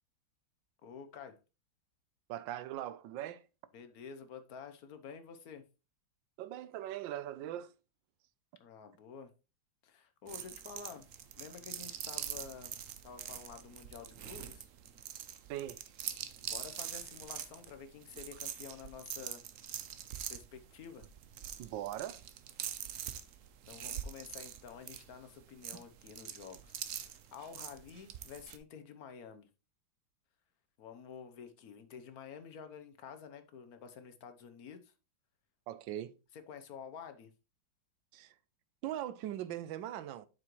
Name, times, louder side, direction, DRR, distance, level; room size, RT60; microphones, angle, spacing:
voice 1, 0.8-1.4 3.7-5.6 8.6-9.3 9.8-11.1 11.4-12.7 13.0-14.6 16.4-19.4 20.3-21.1 23.7-29.5 30.8-34.9 36.3-37.3, left 6 dB, 60° left, 1.2 m, -50 dB
voice 2, 2.3-3.4 6.4-7.7 15.5-15.8 21.6-22.2 35.7-36.1 38.1-38.3 38.8-40.3, right 12 dB, 80° right, 1.3 m, -40 dB
sound 1, 10.3-28.6, right 9 dB, 65° right, 0.8 m, -44 dB
7.6 x 6.1 x 3.1 m
omnidirectional pair, 2.0 m